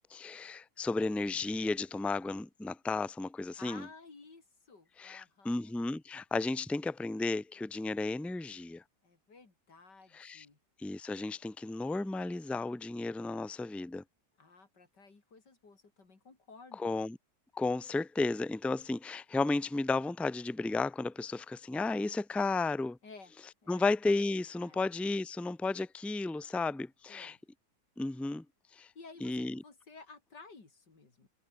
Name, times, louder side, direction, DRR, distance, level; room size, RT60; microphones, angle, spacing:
voice 1, 0.1-3.9 5.0-8.8 10.1-10.4 10.8-14.0 16.8-17.2 17.5-23.0 23.7-27.4 28.0-28.4 28.7-28.9 29.2-29.6, left 3 dB, ahead, 0.7 m, -33 dB
voice 2, 3.6-5.7 9.0-10.6 14.4-17.0 23.0-23.3 23.6-23.9 24.6-24.8 27.1-27.4 28.7-31.3, left 4 dB, 90° left, 4.3 m, -54 dB
omnidirectional pair, 1.8 m